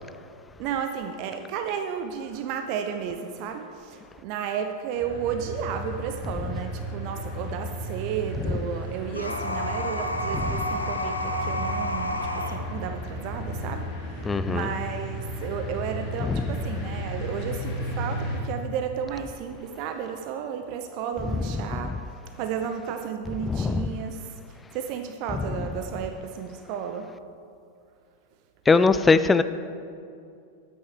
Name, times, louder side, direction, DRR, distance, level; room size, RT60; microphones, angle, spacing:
voice 1, 0.6-21.9 22.3-24.2 24.5-27.1, right 7 dB, 45° right, 7 dB, 0.6 m, -33 dB
sound 1, 4.9-18.4, equal, 35° left, 2.3 m, -34 dB
sound 2, 9.1-12.6, left 1 dB, 85° left, 0.7 m, -30 dB
voice 2, 14.2-14.7 16.3-16.4 23.5-23.8 28.7-29.4, left 4 dB, 15° left, 12 dB, 0.3 m, -20 dB
12.0 x 8.6 x 3.6 m, 2.4 s
figure-of-eight pair, 90°, 0 cm